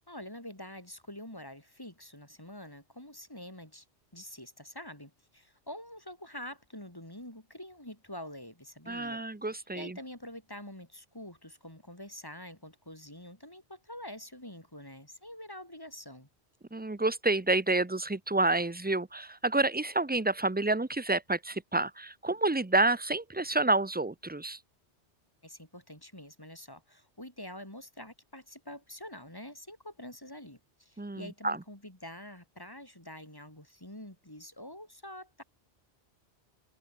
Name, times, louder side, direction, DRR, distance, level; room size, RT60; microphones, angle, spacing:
voice 1, 0.1-3.9 4.1-9.2 9.5-16.3 25.4-35.4, left 1 dB, 20° left, 4.2 m, -46 dB
voice 2, 8.9-9.9 16.7-24.6 31.0-31.6, right 2 dB, 10° right, 0.6 m, -29 dB
omnidirectional pair, 1.2 m